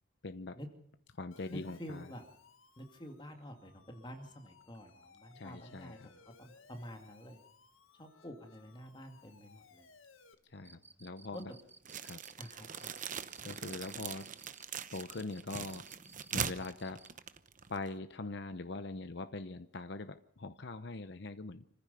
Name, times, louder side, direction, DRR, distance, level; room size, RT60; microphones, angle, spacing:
voice 1, 0.2-0.6 1.1-2.1 5.3-6.1 10.5-11.5 12.0-12.2 13.4-14.3 14.9-15.9 16.3-17.0 17.7-21.6, left 3 dB, 55° left, 10 dB, 0.8 m, -42 dB
Siren, 1.3-10.3, left 4 dB, 80° left, 1.9 m, -62 dB
voice 2, 1.5-2.3 2.8-7.4 7.9-9.9 10.6-11.0 11.3-11.4 12.4-12.9, equal, 20° left, 4 dB, 2.3 m, -49 dB
Cricket, 10.6-17.2, right 3 dB, 10° right, 0.8 m, -59 dB
sound 1, 11.8-18.0, right 7 dB, 40° right, 0.9 m, -42 dB
27.0 x 15.0 x 6.9 m, 0.67 s
head